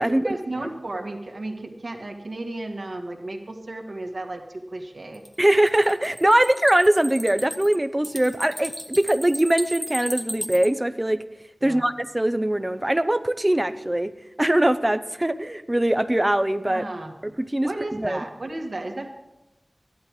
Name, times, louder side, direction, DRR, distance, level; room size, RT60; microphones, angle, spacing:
voice 1, 0.0-5.2 11.6-11.8 16.6-17.1 17.6-19.2, right 2 dB, 75° right, 2 dB, 1.8 m, -34 dB
sound 1, 5.1-10.7, equal, 10° left, 1.5 m, -35 dB
voice 2, 5.4-11.2 11.6-14.1 14.4-16.8 17.2-18.3, right 1 dB, 25° right, 12 dB, 0.6 m, -22 dB
13.5 x 11.0 x 4.8 m, 0.96 s
wide cardioid pair, 45°, 0 cm